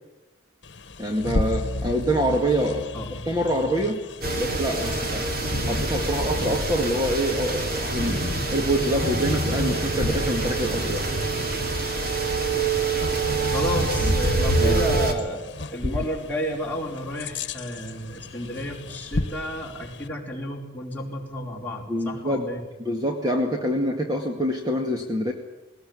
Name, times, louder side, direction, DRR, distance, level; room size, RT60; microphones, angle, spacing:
Bird vocalization bird call bird song, 0.6-20.1, left 2 dB, 70° left, 1.3 m, -34 dB
voice 1, 1.0-2.9 3.3-4.0 4.4-5.2 5.6-8.2 8.5-11.1 14.0-14.1 14.6-14.8 15.8-16.0 21.9-22.4 22.8-25.3, equal, 20° right, 2 dB, 2.0 m, -25 dB
voice 2, 2.9-3.3 13.5-15.4 15.7-22.6, left 1 dB, 10° left, -3 dB, 4.7 m, -31 dB
sound 1, 4.2-15.1, right 3 dB, 50° right, 2.9 m, -26 dB
20.0 x 19.5 x 9.7 m, 1.1 s
head